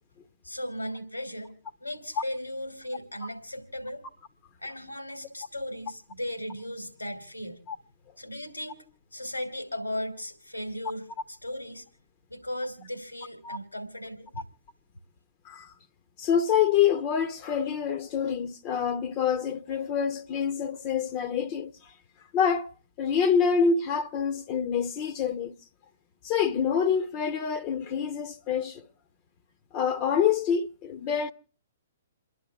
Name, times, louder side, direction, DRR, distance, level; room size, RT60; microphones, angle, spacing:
voice 1, 0.4-1.5 1.8-4.0 4.6-7.6 8.2-11.8 12.3-14.5, left 1 dB, 85° left, 2.9 m, -37 dB
voice 2, 16.2-21.7 22.3-22.7 23.0-25.5 26.2-28.9 29.7-31.3, left 7 dB, 30° left, 0.9 m, -26 dB
29.0 x 11.0 x 3.5 m
figure-of-eight pair, 120°, 0 cm